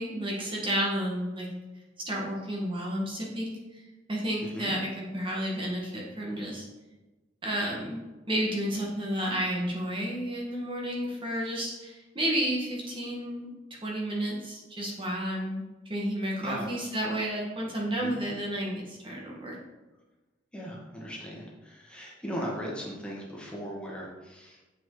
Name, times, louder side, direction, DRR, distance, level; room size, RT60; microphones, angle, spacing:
voice 1, 0.0-1.5 2.1-3.5 4.1-6.6 7.4-8.0 8.3-13.5 13.8-19.6, equal, 30° right, -3 dB, 1.4 m, -31 dB
voice 2, 4.4-4.7 16.4-16.7 18.0-18.2 20.5-24.6, equal, 5° left, -4 dB, 1.7 m, -38 dB
7.8 x 6.1 x 3.8 m, 1.1 s
head